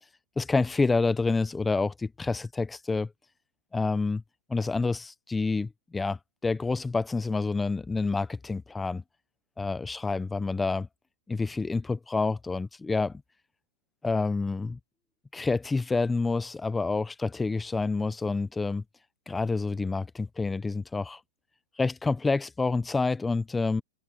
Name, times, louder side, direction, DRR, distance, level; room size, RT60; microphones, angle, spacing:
voice 1, 0.4-3.1 3.7-4.2 4.5-9.0 9.6-10.9 11.3-13.2 14.0-14.8 15.3-18.8 19.3-21.2 21.8-23.8, left 3 dB, 10° left, 0.8 m, -28 dB
hypercardioid pair, 145°, 0 cm